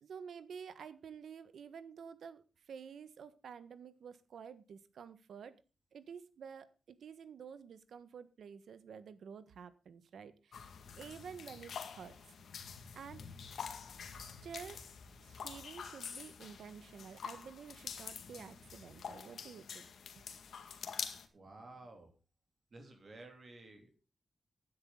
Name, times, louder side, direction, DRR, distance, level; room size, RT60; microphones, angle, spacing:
voice 1, 0.0-5.6 5.9-10.6 11.0-12.2 12.9-13.2 14.2-14.8 15.2-19.9, right 7 dB, 90° right, 13 dB, 1.4 m, -50 dB
sound 1, 10.5-21.3, left 6 dB, 85° left, 2.0 m, -47 dB
voice 2, 21.3-22.1 22.7-24.0, right 2 dB, 40° right, 4 dB, 3.2 m, -53 dB
16.0 x 10.5 x 3.9 m, 0.32 s
wide cardioid pair, 165°, 0 cm